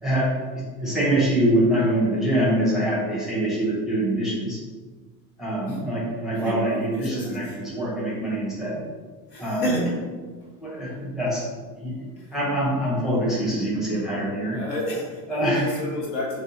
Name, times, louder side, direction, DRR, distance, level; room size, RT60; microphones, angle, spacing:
voice 1, 0.0-4.6 5.4-8.8 9.4-9.8 10.6-11.4 11.7-12.0 12.3-14.6 15.3-15.6, right 1 dB, ahead, -7 dB, 0.9 m, -24 dB
voice 2, 6.3-7.7 9.3-10.0 12.2-12.3 14.3-16.4, equal, 60° left, -5 dB, 1.3 m, -30 dB
2.6 x 2.3 x 3.8 m, 1.4 s
hypercardioid pair, 80°, 49 cm